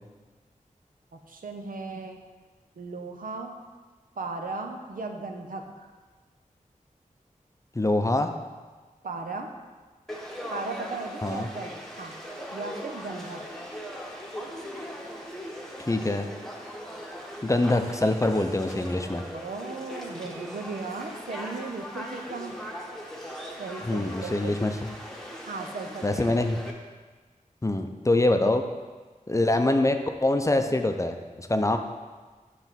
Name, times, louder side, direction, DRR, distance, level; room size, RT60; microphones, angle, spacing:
voice 1, 1.1-2.2 2.8-3.6 4.2-5.9 9.0-9.5 10.5-12.2 12.5-13.4 19.3-22.6 23.6-24.6 25.5-26.2, right 3 dB, 85° right, 4 dB, 0.6 m, -36 dB
voice 2, 7.7-8.3 11.2-11.5 15.9-16.3 17.4-19.2 23.8-24.9 26.0-26.6 27.6-28.6 29.3-31.8, left 2 dB, 20° left, 6 dB, 0.5 m, -24 dB
Conversation / Crowd, 10.1-26.7, equal, 5° left, 1.0 m, -40 dB
7.1 x 3.4 x 5.7 m, 1.4 s
wide cardioid pair, 55°, 14 cm